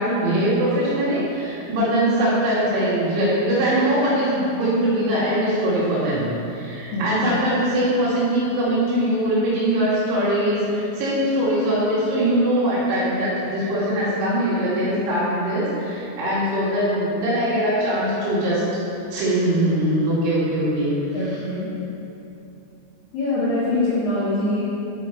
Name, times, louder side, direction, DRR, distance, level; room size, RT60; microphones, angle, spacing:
voice 1, 0.0-18.6 19.1-21.4, right 1 dB, 70° right, -11 dB, 4.5 m, -22 dB
voice 2, 6.9-7.3 21.1-21.7 23.1-24.6, left 2 dB, 75° left, -9 dB, 2.1 m, -24 dB
10.5 x 5.2 x 4.6 m, 2.8 s
omnidirectional pair, 5.9 m